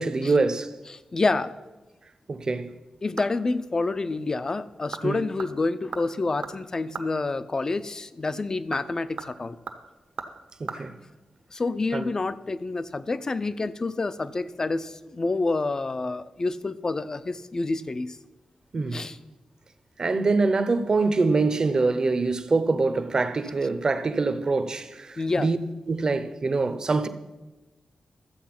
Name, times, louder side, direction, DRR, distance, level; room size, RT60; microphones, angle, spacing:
voice 1, 0.0-0.7 2.3-2.8 5.0-5.2 10.6-10.9 11.9-12.1 18.7-19.1 20.0-25.6 25.9-27.1, right 3 dB, 35° right, 0.7 m, -24 dB
voice 2, 0.9-1.5 3.0-9.6 10.8-10.9 11.5-18.2 18.9-19.2 25.2-25.5, left 3 dB, 30° left, 0.5 m, -28 dB
sound 1, 2.7-3.6 3.9-4.0 4.7-5.1 5.4-7.2 8.5-10.8 11.1-11.2, right 5 dB, 70° right, 1.1 m, -39 dB
13.0 x 8.0 x 5.9 m
wide cardioid pair, 160°, 2 cm